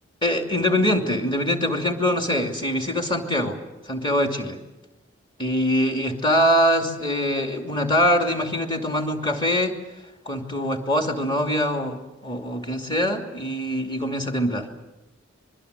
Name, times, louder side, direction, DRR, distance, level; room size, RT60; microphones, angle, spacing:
voice 1, 0.2-3.6 3.9-4.6 5.4-9.8 10.3-14.7, equal, 25° left, 4 dB, 2.7 m, -23 dB
25.5 x 22.5 x 8.3 m, 1.0 s
head